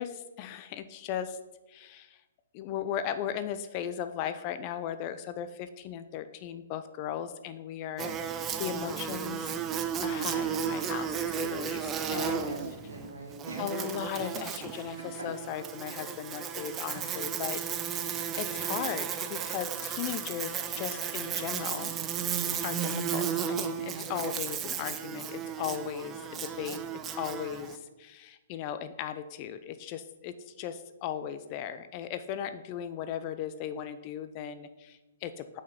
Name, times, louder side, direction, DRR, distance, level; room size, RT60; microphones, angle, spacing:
voice 1, 0.0-1.4 1.7-2.2 2.5-9.5 10.0-12.5 13.6-21.9 22.6-26.8 27.2-35.6, left 9 dB, 35° left, 11 dB, 0.4 m, -37 dB
Buzz, 8.0-27.8, right 8 dB, 20° right, 0.5 m, -34 dB
voice 2, 10.1-10.4 12.1-13.6 18.1-18.4 23.8-24.1, right 2 dB, 80° right, -1 dB, 2.2 m, -43 dB
6.3 x 5.6 x 5.2 m, 1.1 s
figure-of-eight pair, 125°, 0 cm